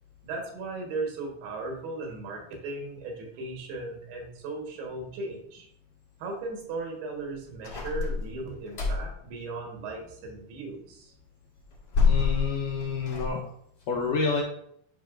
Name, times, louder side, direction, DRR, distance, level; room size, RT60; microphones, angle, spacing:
voice 1, 0.2-5.7 6.2-11.1, right 3 dB, 90° right, 1 dB, 3.4 m, -37 dB
sound 1, 7.6-9.2 11.6-13.3, left 5 dB, 55° left, 1.8 m, -27 dB
voice 2, 12.0-13.4 13.9-14.4, left 4 dB, 75° left, -1 dB, 2.0 m, -28 dB
10.5 x 5.4 x 2.5 m, 0.69 s
omnidirectional pair, 4.5 m